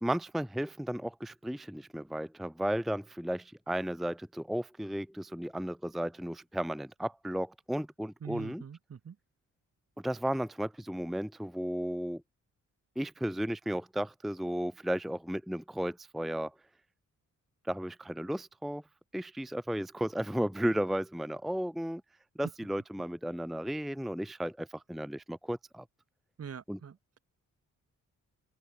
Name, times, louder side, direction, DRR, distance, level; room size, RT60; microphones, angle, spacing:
voice 1, 0.0-8.6 10.0-12.2 13.0-16.5 17.6-18.8 19.1-22.0 22.4-25.8 26.7-26.8, equal, ahead, 0.6 m, -34 dB
voice 2, 8.2-9.2 26.4-27.2, right 7 dB, 50° right, 2.0 m, -44 dB
open air
wide cardioid pair, 120°, 31 cm